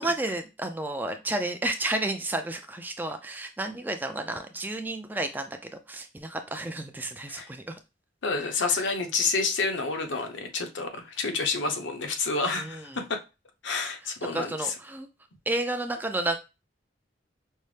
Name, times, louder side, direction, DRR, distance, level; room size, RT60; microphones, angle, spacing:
voice 1, 0.0-7.7 8.7-8.8 12.6-13.0 14.3-15.1 15.5-16.4, right 2 dB, 10° right, 6 dB, 0.3 m, -31 dB
voice 2, 8.2-13.2 13.6-14.7, left 4 dB, 75° left, 5 dB, 0.8 m, -29 dB
5.4 x 2.0 x 3.2 m, 0.27 s
head